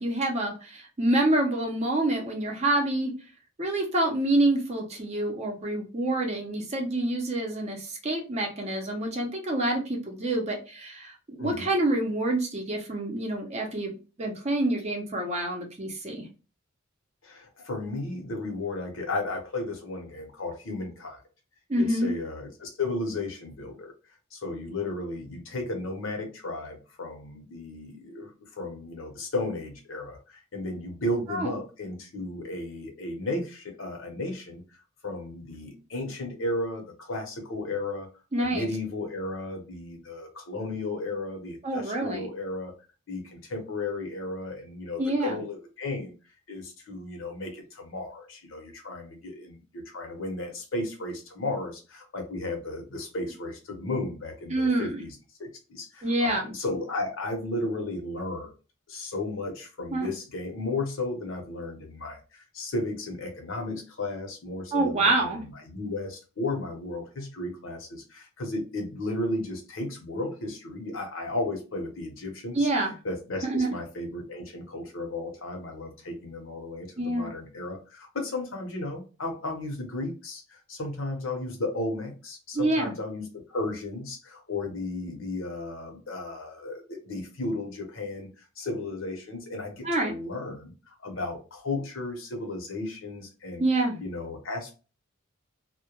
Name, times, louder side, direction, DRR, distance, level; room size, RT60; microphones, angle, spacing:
voice 1, 0.0-3.1 3.6-16.3 21.7-22.1 31.3-31.5 38.3-38.7 41.6-42.3 45.0-45.4 54.5-55.0 56.0-56.5 59.9-60.1 64.7-65.4 72.5-72.9 73.4-73.7 77.0-77.3 82.5-82.9 89.8-90.1 93.6-94.0, right 1 dB, 35° right, 1 dB, 0.6 m, -27 dB
voice 2, 11.4-11.7 17.2-21.2 21.8-23.9 24.3-38.1 38.4-42.7 43.1-46.1 46.5-58.5 58.9-72.7 73.0-90.7 91.0-93.6 94.0-94.7, left 2 dB, 70° left, 3 dB, 0.8 m, -34 dB
2.2 x 2.1 x 2.9 m, 0.33 s
head